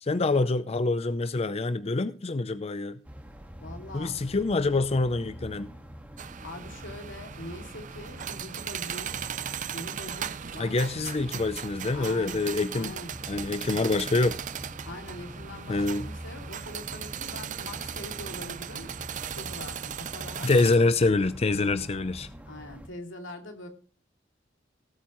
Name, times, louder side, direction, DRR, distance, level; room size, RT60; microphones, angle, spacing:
voice 1, 0.0-3.0 3.9-5.7 10.6-12.9 13.3-14.4 15.7-16.1 20.4-22.3, left 3 dB, 35° left, 0.5 m, -26 dB
sound 1, 3.0-22.9, equal, 10° right, 1.7 m, -45 dB
voice 2, 3.6-4.2 6.4-9.3 9.7-10.8 11.9-12.4 12.7-13.1 13.6-13.9 14.8-18.9 19.3-20.5 22.5-23.7, left 1 dB, 85° left, 2.6 m, -43 dB
sound 2, 6.2-20.8, right 8 dB, 40° right, 0.5 m, -38 dB
18.0 x 8.4 x 3.1 m
head